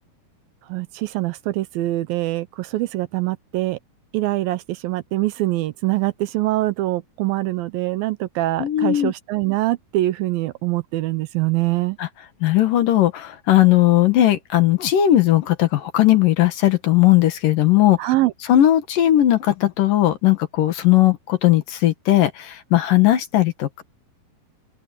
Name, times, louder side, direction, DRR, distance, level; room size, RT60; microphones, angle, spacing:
voice 1, 0.7-3.8 4.1-12.0 18.0-18.3, right 17 dB, 80° right, 2.4 m, -24 dB
voice 2, 8.6-9.1 12.0-12.1 12.4-18.0 18.5-23.8, left 13 dB, 65° left, 3.0 m, -17 dB
open air
omnidirectional pair, 4.4 m